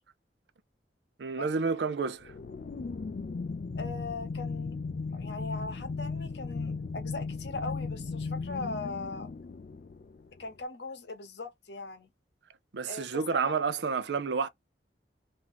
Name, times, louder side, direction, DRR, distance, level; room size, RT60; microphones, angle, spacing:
voice 1, 1.2-2.3 12.7-14.5, right 5 dB, 75° right, 0.5 m, -30 dB
sound 1, 2.2-10.5, left 4 dB, 50° left, 0.4 m, -36 dB
voice 2, 3.7-4.8 5.1-9.3 10.4-12.1 12.9-13.0 13.4-13.6, left 3 dB, 70° left, 0.9 m, -39 dB
2.9 x 2.6 x 3.9 m
head